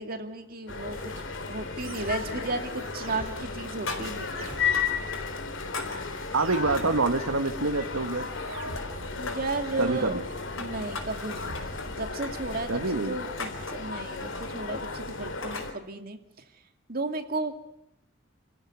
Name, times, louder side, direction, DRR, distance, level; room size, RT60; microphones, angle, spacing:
voice 1, 0.0-4.4 5.1-5.2 9.2-10.1 10.6-16.2 16.9-17.6, right 2 dB, 45° right, 6 dB, 2.4 m, -34 dB
sound 1, 0.7-15.7, left 5 dB, 70° left, 2.4 m, -34 dB
sound 2, 0.9-12.9, right 2 dB, 75° right, 2.9 m, -47 dB
sound 3, 2.4-3.0 3.2-5.2 5.5-7.3 7.7-8.5 8.8-9.6 10.2-15.7, left 3 dB, 90° left, 5.0 m, -40 dB
voice 2, 6.3-8.3 9.8-10.1 12.7-13.1, right 3 dB, 90° right, 5 dB, 1.5 m, -26 dB
29.5 x 15.0 x 9.6 m, 0.79 s
head